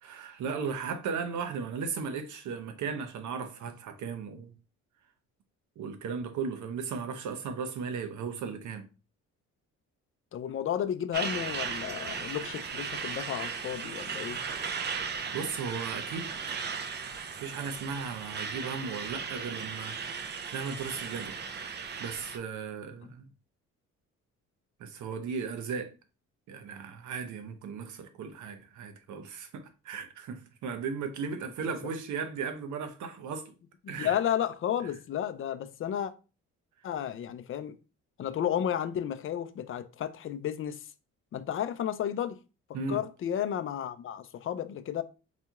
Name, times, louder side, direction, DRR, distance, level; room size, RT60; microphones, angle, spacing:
voice 1, 0.0-4.5 5.8-8.8 15.3-16.6 17.3-20.2 20.5-21.4 22.0-23.3 24.8-25.9 26.5-33.5 33.9-34.2 42.7-43.0, right 5 dB, 75° right, 0.8 m, -36 dB
voice 2, 10.3-14.4 23.0-23.1 34.0-36.1 36.8-37.8 38.2-40.9 41.3-42.4 42.9-45.0, left 10 dB, 45° left, 0.4 m, -32 dB
Truck, 11.1-22.4, right 6 dB, 35° right, 0.5 m, -36 dB
4.2 x 2.7 x 2.3 m
cardioid pair, 90°, 30 cm